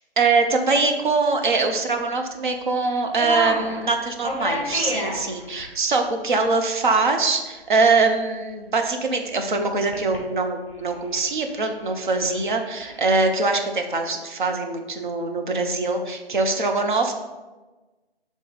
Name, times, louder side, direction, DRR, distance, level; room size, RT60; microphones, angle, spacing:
voice 1, 0.2-17.1, right 3 dB, 50° right, 4 dB, 0.8 m, -23 dB
sound 1, 2.8-2.9 3.0-3.8 4.2-5.7 5.9-6.0 6.4-6.5 9.8-10.2 10.7-13.0, left 1 dB, 5° left, 1.4 m, -29 dB
6.9 x 3.7 x 4.0 m, 1.2 s
figure-of-eight pair, 160°, 32 cm